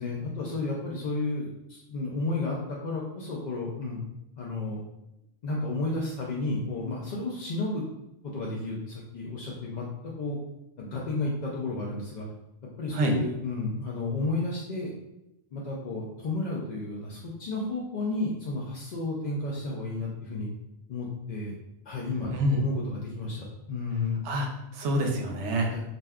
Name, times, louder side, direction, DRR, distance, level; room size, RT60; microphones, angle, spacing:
voice 1, 0.0-4.0 4.4-4.8 5.4-7.8 8.2-10.4 10.8-12.3 12.8-14.9 15.5-20.5 20.9-21.5 21.9-24.3 25.7-25.8, left 2 dB, 60° left, -4 dB, 0.5 m, -32 dB
voice 2, 22.3-22.6 24.2-25.7, right 1 dB, 80° right, 2 dB, 0.9 m, -27 dB
2.6 x 2.2 x 3.4 m, 0.90 s
omnidirectional pair, 1.2 m